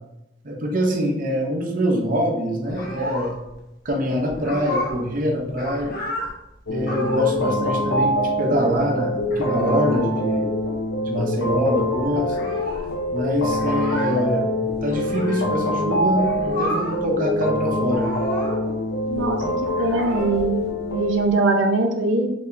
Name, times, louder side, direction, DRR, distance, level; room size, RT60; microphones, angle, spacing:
voice 1, 0.4-3.3 3.8-5.9 6.7-10.5 11.0-12.4 12.9-14.5 14.8-18.1, equal, 45° right, 2 dB, 0.7 m, -24 dB
sound 1, 2.6-3.6 3.9-4.0 4.3-5.1 5.4-6.3 6.8-7.4 7.7-7.8 7.9-8.8 9.2-10.0 10.3-10.4 10.5-11.2 11.5-11.6 11.7-15.5 16.1-17.1 17.3-18.7 19.1-21.3, left 1 dB, 55° left, 1.0 m, -32 dB
sound 2, 6.7-21.1, left 1 dB, 85° left, 0.6 m, -25 dB
voice 2, 19.1-19.4 19.8-22.3, right 2 dB, 80° right, 4 dB, 0.6 m, -22 dB
5.0 x 3.3 x 2.6 m, 0.91 s
head